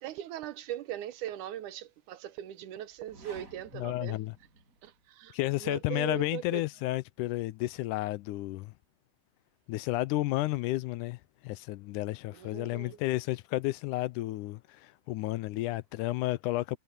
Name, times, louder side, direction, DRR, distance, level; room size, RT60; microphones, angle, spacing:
voice 1, 0.0-4.2 4.8-6.6 12.3-13.0, right 12 dB, 80° right, 2.3 m, -40 dB
sound 1, 2.9-5.1, right 2 dB, 25° right, 8.0 m, -53 dB
voice 2, 3.7-4.3 5.3-8.7 9.7-16.8, left 18 dB, 80° left, 2.0 m, -32 dB
omnidirectional pair, 3.7 m